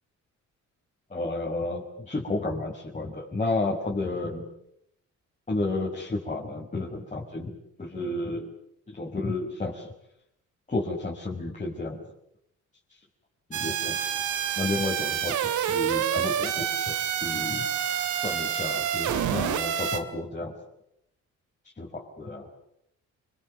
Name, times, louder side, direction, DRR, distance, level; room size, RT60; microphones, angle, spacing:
voice 1, 1.1-4.4 5.5-8.5 8.9-9.9 10.7-12.0 13.5-14.2 14.6-17.6 18.2-20.5 21.8-22.5, left 2 dB, 25° left, -4 dB, 6.0 m, -32 dB
sound 1, 13.5-20.0, right 9 dB, 75° right, 2.7 m, -28 dB
29.5 x 23.0 x 8.1 m, 0.77 s
cardioid pair, 90°, 30 cm